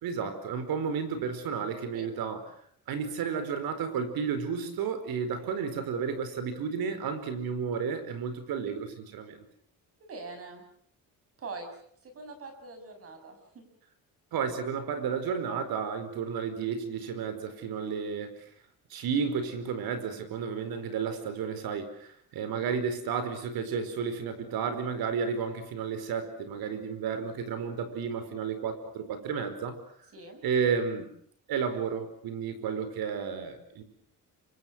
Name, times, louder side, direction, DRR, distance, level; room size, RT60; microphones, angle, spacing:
voice 1, 0.0-2.4 2.9-9.4 14.3-18.3 18.9-29.8 30.4-31.1 31.5-33.8, right 6 dB, 85° right, 10 dB, 4.8 m, -32 dB
voice 2, 10.0-10.6 11.4-11.7 12.0-13.6 30.1-30.4, right 3 dB, 40° right, 6 dB, 6.4 m, -43 dB
28.0 x 24.5 x 6.3 m, 0.63 s
cardioid pair, 175°, 35 cm